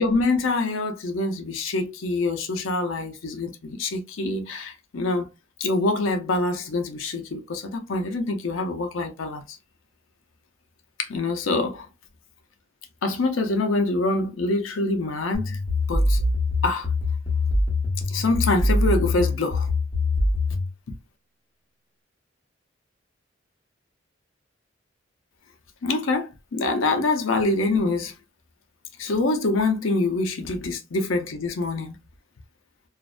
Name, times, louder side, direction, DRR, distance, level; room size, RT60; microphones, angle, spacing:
voice 1, 0.0-5.3 5.6-9.4 11.0-11.8 13.0-15.6 15.9-16.2 16.6-16.9 18.1-19.7 25.8-28.1 29.0-32.0, left 2 dB, 80° left, 0.6 m, -25 dB
sound 1, 15.3-20.7, left 2 dB, 35° left, 1.0 m, -23 dB
2.5 x 2.1 x 2.4 m
head